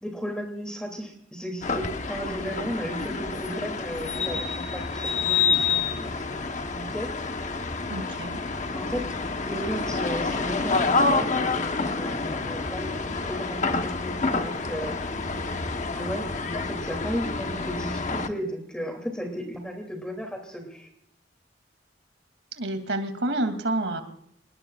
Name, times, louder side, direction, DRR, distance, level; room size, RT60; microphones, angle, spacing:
voice 1, 0.0-6.4 6.7-7.2 8.7-9.1 9.4-14.9 15.9-20.9, equal, 5° left, 4 dB, 2.8 m, -35 dB
sound 1, 1.6-18.3, left 4 dB, 40° left, 1.1 m, -28 dB
voice 2, 7.9-8.4 22.5-24.0, right 1 dB, 90° right, 7 dB, 2.8 m, -28 dB
27.5 x 20.5 x 2.5 m, 0.70 s
head